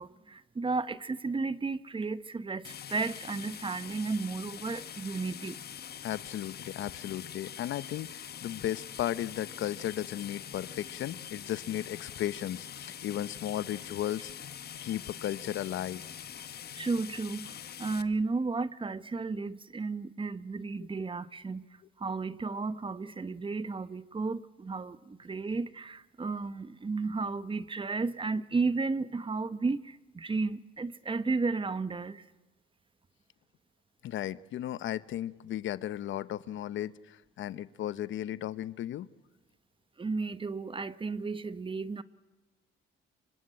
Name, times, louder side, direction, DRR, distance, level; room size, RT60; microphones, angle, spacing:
voice 1, 0.0-5.6 16.8-17.5 17.8-21.6 22.0-32.2 40.0-42.0, right 4 dB, 25° right, 1.1 m, -33 dB
sound 1, 2.6-18.0, left 9 dB, 55° left, 1.0 m, -44 dB
voice 2, 6.0-14.5 14.8-16.0 34.0-39.1, left 12 dB, 75° left, 0.9 m, -35 dB
26.5 x 24.5 x 8.8 m
cardioid pair, 90°, 20 cm